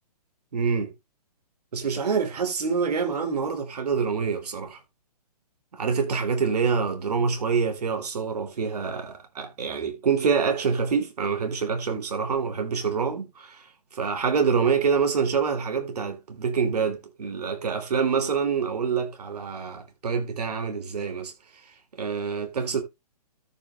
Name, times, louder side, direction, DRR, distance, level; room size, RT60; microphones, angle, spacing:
voice 1, 0.5-0.9 1.7-4.8 5.7-13.6 13.9-21.3 22.0-22.8, right 5 dB, 70° right, 3.4 m, -26 dB
13.5 x 6.3 x 2.5 m
hypercardioid pair, 140°, 21 cm